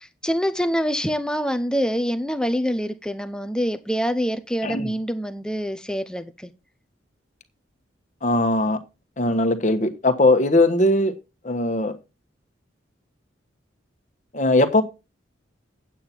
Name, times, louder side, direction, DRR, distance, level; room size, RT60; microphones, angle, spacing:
voice 1, 0.0-6.5, equal, 5° left, 0.6 m, -25 dB
voice 2, 8.2-8.8 9.2-11.1 11.4-11.9 14.3-14.8, left 2 dB, 40° left, 1.3 m, -19 dB
8.6 x 8.5 x 4.5 m
head